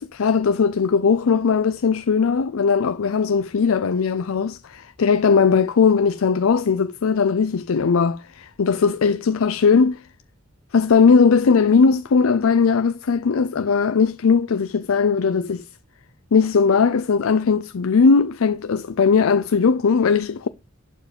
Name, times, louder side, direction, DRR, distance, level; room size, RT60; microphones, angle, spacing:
voice 1, 0.0-10.0 10.7-15.6 16.3-20.5, left 5 dB, 90° left, 0.5 m, -18 dB
11.5 x 4.6 x 5.0 m
head